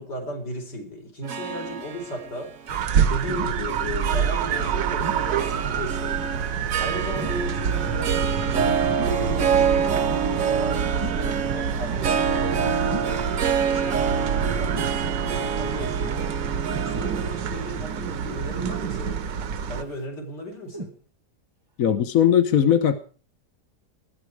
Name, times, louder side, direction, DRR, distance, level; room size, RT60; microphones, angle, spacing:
voice 1, 0.0-2.5 3.1-6.3 6.8-13.2 13.6-16.2 16.8-19.3 19.7-20.9, equal, 70° left, 1 dB, 5.5 m, -36 dB
Harp, 1.2-19.7, right 6 dB, 55° right, 1.2 m, -28 dB
sound 1, 2.7-19.8, right 7 dB, 85° right, 1.7 m, -27 dB
sound 2, 3.3-3.6 5.0-5.3 7.1-7.5 9.0-9.2 11.0-11.3 12.9-13.2 14.7-15.0 16.7-16.9 18.6-19.2 20.7-21.0 21.8-21.9, right 1 dB, 30° right, 0.4 m, -36 dB
voice 2, 21.8-23.0, left 9 dB, 55° left, 9 dB, 1.3 m, -19 dB
20.0 x 13.5 x 4.7 m, 0.40 s
omnidirectional pair, 1.9 m